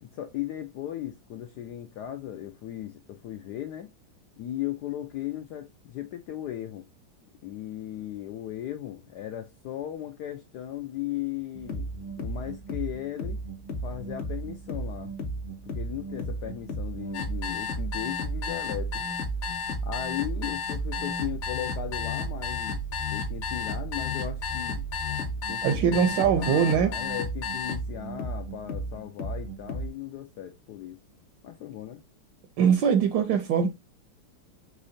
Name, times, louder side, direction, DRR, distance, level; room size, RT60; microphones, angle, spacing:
voice 1, 0.0-3.9 4.4-6.9 7.4-11.9 12.2-13.4 13.8-15.1 15.7-19.0 19.8-22.8 23.1-24.8 25.5-25.9 26.3-31.0 31.4-32.0, left 12 dB, 80° left, 0.9 m, -37 dB
sound 1, 11.5-29.9, right 1 dB, 45° left, 0.7 m, -35 dB
sound 2, 17.1-27.8, left 6 dB, 65° left, 1.3 m, -33 dB
voice 2, 25.6-26.9 32.6-33.7, right 7 dB, 75° right, 1.2 m, -22 dB
5.5 x 3.1 x 2.5 m
omnidirectional pair, 2.3 m